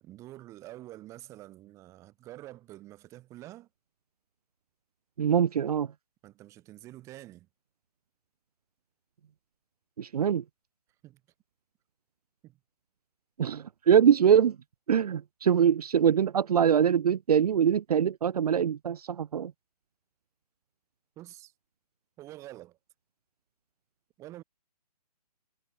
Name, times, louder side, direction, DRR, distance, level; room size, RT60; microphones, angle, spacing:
voice 1, 0.0-3.7 6.2-7.5 11.0-11.2 12.4-12.6 21.2-21.5 22.2-22.8 24.2-24.4, right 15 dB, 15° right, 1.3 m, -47 dB
voice 2, 5.2-5.9 10.0-10.4 13.4-14.6 14.9-19.5, right 8 dB, 65° right, 0.6 m, -23 dB
hypercardioid pair, 155°, 21 cm